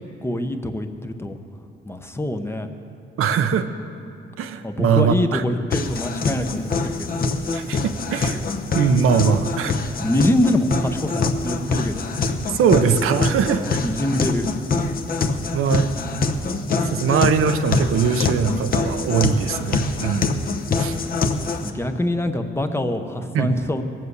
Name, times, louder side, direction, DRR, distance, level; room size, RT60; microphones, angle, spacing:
voice 1, 0.0-1.4 1.9-2.7 4.6-7.6 10.0-12.0 13.6-14.5 21.6-23.8, left 1 dB, 10° left, 6 dB, 0.7 m, -24 dB
voice 2, 3.2-3.7 4.4-5.4 7.5-8.4 8.7-9.8 12.5-13.6 15.5-15.9 16.9-20.3 20.8-21.0 23.3-23.5, right 6 dB, 90° right, 8 dB, 0.8 m, -21 dB
sound 1, 5.7-21.7, left 3 dB, 45° left, 0.9 m, -25 dB
19.0 x 7.5 x 8.1 m, 2.5 s
wide cardioid pair, 145°, 21 cm